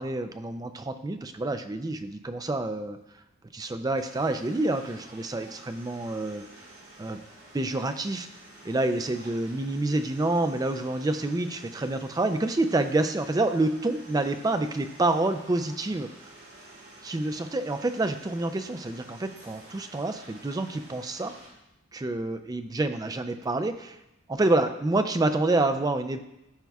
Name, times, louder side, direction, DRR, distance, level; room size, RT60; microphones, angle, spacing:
voice 1, 0.0-3.0 3.5-6.5 7.0-7.2 7.5-8.3 8.6-16.1 17.0-21.3 21.9-24.0 24.3-26.2, right 2 dB, 20° right, 8 dB, 0.4 m, -28 dB
sound 1, 3.9-21.5, right 1 dB, 60° right, 2.8 m, -50 dB
13.0 x 4.6 x 2.3 m, 0.87 s
head